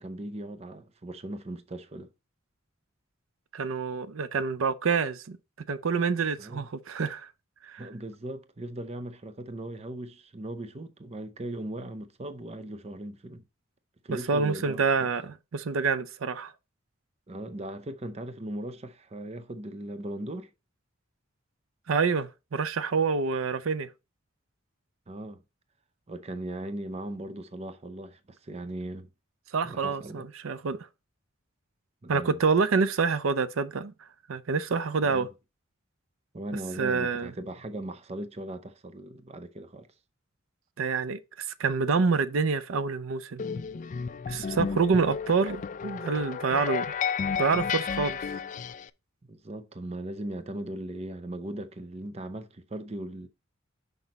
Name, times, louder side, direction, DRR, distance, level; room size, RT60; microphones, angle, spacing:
voice 1, 0.0-2.1 6.4-6.7 7.8-13.4 14.0-15.1 17.3-20.5 25.1-25.4 26.1-29.1 29.6-30.2 32.0-32.4 35.0-35.3 36.3-39.9 49.3-53.3, right 1 dB, 30° right, 0.6 m, -38 dB
voice 2, 3.5-5.4 5.7-7.3 7.6-7.8 14.1-16.5 21.9-23.9 29.5-30.8 32.1-33.9 34.3-35.3 36.8-37.3 40.8-43.4 44.3-46.9 47.4-48.2, right 5 dB, 90° right, 0.5 m, -27 dB
sound 1, 43.4-48.9, left 6 dB, 40° left, 0.3 m, -32 dB
6.0 x 5.4 x 4.0 m
head